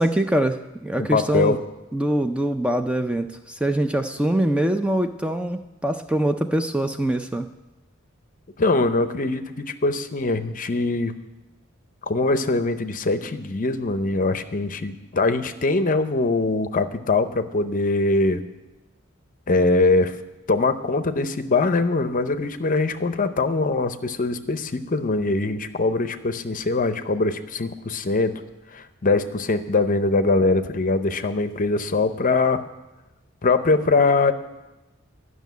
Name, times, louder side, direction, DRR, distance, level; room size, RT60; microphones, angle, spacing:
voice 1, 0.0-1.6 1.9-7.5, right 1 dB, 5° right, 7 dB, 0.4 m, -23 dB
voice 2, 1.0-1.6 8.6-11.1 12.0-18.4 19.5-20.1 20.5-28.3 28.7-32.7 33.4-34.3, left 3 dB, 40° left, 10 dB, 0.7 m, -22 dB
11.5 x 6.3 x 9.3 m, 1.0 s
head